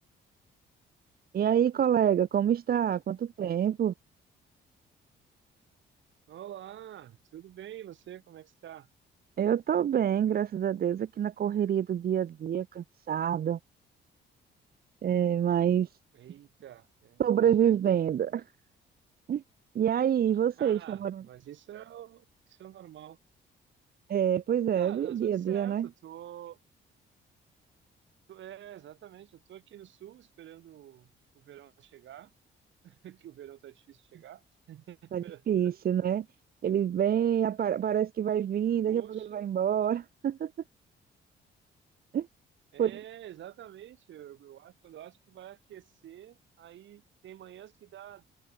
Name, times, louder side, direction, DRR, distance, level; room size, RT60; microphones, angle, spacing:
voice 1, 1.3-3.9 9.4-13.6 15.0-15.9 17.2-18.4 19.3-19.4 19.7-21.2 24.1-25.9 35.1-36.2 36.6-40.5 42.1-42.3 42.8-42.9, right 9 dB, 50° right, 0.7 m, -27 dB
voice 2, 6.3-8.9 16.1-17.8 20.6-23.2 24.7-26.6 28.3-32.3 32.8-35.7 38.9-39.5 42.7-48.3, right 11 dB, 70° right, 2.1 m, -48 dB
cardioid pair, 90°, 20 cm